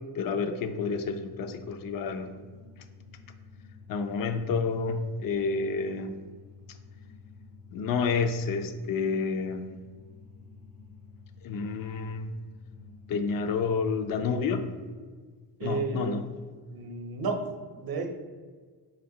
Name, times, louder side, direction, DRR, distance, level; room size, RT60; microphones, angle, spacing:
voice 1, 0.2-2.3 3.9-6.1 7.7-9.7 11.4-12.3 13.1-14.7 15.6-16.3, left 5 dB, 55° left, 8 dB, 0.5 m, -29 dB
sound 1, 0.6-15.0, left 4 dB, 80° left, 1.5 m, -51 dB
voice 2, 15.6-16.1 16.7-17.4 17.7-18.1, right 4 dB, 55° right, 4 dB, 0.7 m, -32 dB
5.3 x 2.8 x 2.7 m, 1.5 s
cardioid pair, 65°, 43 cm